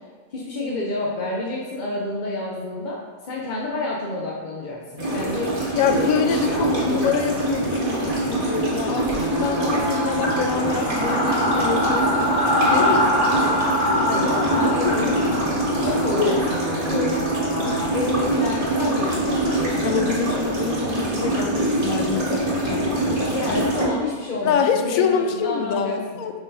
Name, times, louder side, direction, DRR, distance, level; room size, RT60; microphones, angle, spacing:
voice 1, 0.3-3.0 3.3-5.5 5.9-7.4 14.0-17.2 17.9-20.0 23.3-26.0, left 2 dB, 45° left, -4 dB, 0.7 m, -29 dB
sound 1, 5.0-23.9, right 2 dB, 35° right, 1.9 m, -24 dB
voice 2, 5.7-12.3 12.7-15.2 16.2-16.4 19.8-23.7 24.4-26.3, left 7 dB, 75° left, 7 dB, 1.0 m, -26 dB
sound 2, 9.1-18.0, equal, 75° right, 1.8 m, -24 dB
5.6 x 4.7 x 4.1 m, 1.6 s
omnidirectional pair, 1.6 m